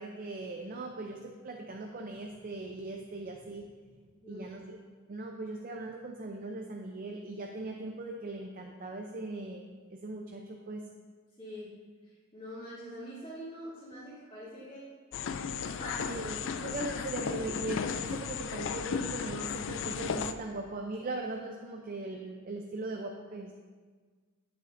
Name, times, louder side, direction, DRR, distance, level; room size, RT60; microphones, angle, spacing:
voice 1, 0.0-3.7 4.3-4.8 5.1-10.8 16.1-23.5, right 2 dB, 40° right, 2 dB, 0.5 m, -39 dB
voice 2, 11.4-11.7 12.3-14.8 15.6-16.1, equal, 25° left, -15 dB, 2.5 m, -44 dB
sound 1, 15.1-20.3, left 6 dB, 60° left, 0.4 m, -35 dB
9.3 x 8.2 x 2.6 m, 1.5 s
head